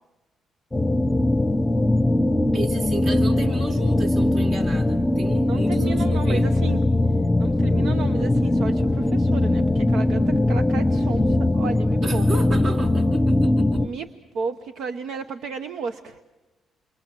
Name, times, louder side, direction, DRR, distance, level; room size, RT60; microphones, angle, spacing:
sound 1, 0.7-13.9, left 1 dB, 10° left, 0.8 m, -21 dB
voice 1, 2.5-6.5 12.0-14.0, right 3 dB, 60° right, 4 dB, 3.3 m, -34 dB
voice 2, 5.4-6.8 7.4-12.2 13.8-14.1 14.3-16.2, right 5 dB, 80° right, 9 dB, 1.0 m, -33 dB
29.0 x 24.5 x 7.7 m, 1.0 s
cardioid pair, 90°, 0 cm